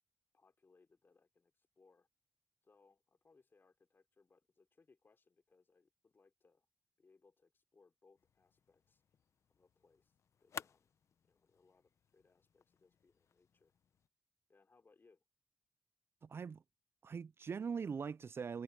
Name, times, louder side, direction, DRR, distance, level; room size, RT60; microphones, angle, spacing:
voice 1, 0.3-2.1 2.6-6.7 7.0-9.0 9.5-10.1 10.4-10.9 11.2-13.7 14.5-15.2, left 4 dB, 45° left, 4.4 m, -71 dB
sound 1, 8.2-14.1, left 7 dB, 80° left, 0.8 m, -56 dB
voice 2, 16.2-16.6 17.0-18.6, right 6 dB, 55° right, 0.4 m, -41 dB
cardioid pair, 70°, 5 cm